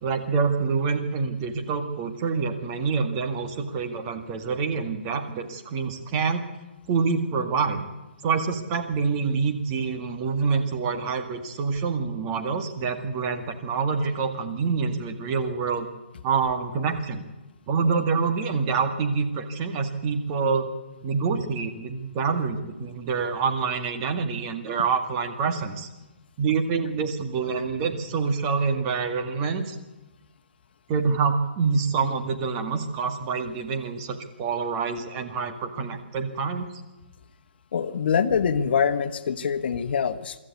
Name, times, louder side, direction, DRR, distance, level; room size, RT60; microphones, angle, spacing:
voice 1, 0.0-6.4 6.9-7.8 8.2-15.9 16.2-17.2 17.7-20.7 21.0-25.9 26.4-29.8 30.9-36.7, right 5 dB, 30° right, 6 dB, 2.0 m, -26 dB
voice 2, 37.7-40.4, left 7 dB, 60° left, 10 dB, 1.3 m, -24 dB
24.5 x 13.5 x 8.4 m, 1.1 s
hypercardioid pair, 150°, 6 cm